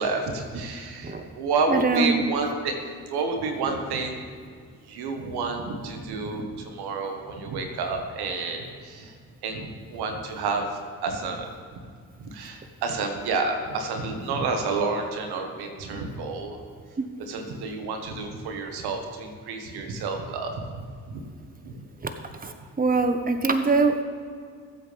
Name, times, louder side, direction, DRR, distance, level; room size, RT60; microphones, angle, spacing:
voice 1, 0.0-2.7 3.1-4.2 4.9-9.1 9.4-10.6 11.0-11.5 12.2-16.6 17.2-21.2 21.6-21.7 22.6-22.7, right 4 dB, 80° right, 4 dB, 1.6 m, -30 dB
voice 2, 1.7-2.2 17.0-17.1 22.0-22.1 22.4-24.0, right 3 dB, 20° right, 7 dB, 1.3 m, -23 dB
20.5 x 8.1 x 3.5 m, 2.1 s
hypercardioid pair, 45°, 39 cm